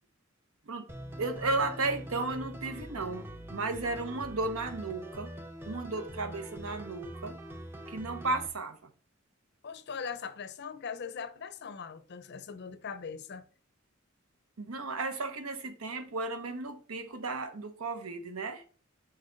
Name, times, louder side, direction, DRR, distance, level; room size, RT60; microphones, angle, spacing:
sound 1, 0.9-8.5, equal, 10° right, 0.6 m, -43 dB
voice 1, 1.2-5.4 5.6-7.4 7.9-8.9 14.6-18.6, right 3 dB, 90° right, 0.9 m, -34 dB
voice 2, 9.6-13.4, left 6 dB, 55° left, 0.5 m, -40 dB
5.6 x 5.4 x 3.8 m
head